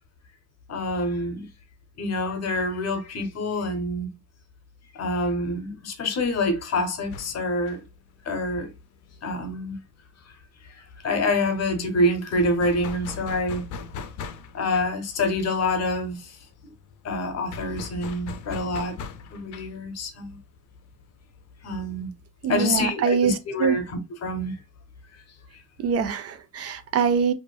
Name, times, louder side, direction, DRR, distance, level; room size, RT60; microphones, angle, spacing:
voice 1, 0.7-1.5 2.0-4.1 4.9-7.8 8.2-8.7 9.2-9.8 10.7-13.6 14.5-16.4 17.0-19.0 19.3-20.4 21.6-22.1 22.5-24.6, left 1 dB, 55° left, 0.8 m, -26 dB
sound 1, 7.0-10.4 10.7-10.8 11.1-22.1, left 5 dB, 80° left, 0.4 m, -41 dB
voice 2, 22.4-23.8 25.8-27.3, right 6 dB, 55° right, 0.4 m, -24 dB
2.5 x 2.5 x 2.2 m
cardioid pair, 90°, 30 cm